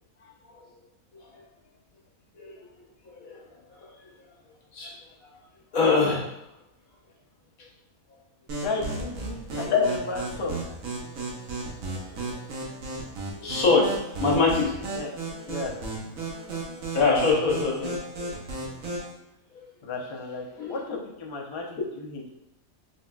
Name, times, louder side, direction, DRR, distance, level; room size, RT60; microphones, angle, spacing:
voice 1, 0.2-0.6 1.1-1.4 2.3-2.7 3.0-3.4 3.7-3.9 4.7-4.9 5.7-6.3 8.1-8.2 9.7-9.8 11.9-12.0 12.3-12.5 13.3-15.0 16.9-18.3 19.5-19.6 20.6-20.7, left 4 dB, 75° left, -2 dB, 1.3 m, -25 dB
voice 2, 8.5-10.6 14.9-15.2 15.5-15.7 19.8-22.3, left 3 dB, 50° left, -1 dB, 0.3 m, -34 dB
sound 1, 8.5-19.1, right 3 dB, 75° right, 1.4 m, -34 dB
4.2 x 3.8 x 2.3 m, 0.87 s
omnidirectional pair, 1.5 m